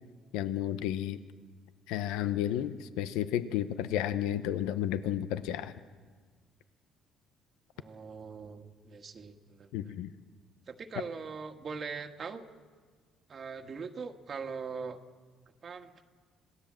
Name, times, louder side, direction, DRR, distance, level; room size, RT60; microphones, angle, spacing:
voice 1, 0.3-1.2 1.9-5.7 9.7-10.1, left 11 dB, 90° left, 12 dB, 0.7 m, -32 dB
voice 2, 7.8-9.9 10.7-12.5 13.3-15.0 15.6-16.0, right 5 dB, 45° right, 6 dB, 1.5 m, -41 dB
26.5 x 18.0 x 7.5 m, 1.5 s
supercardioid pair, 80°, 0 cm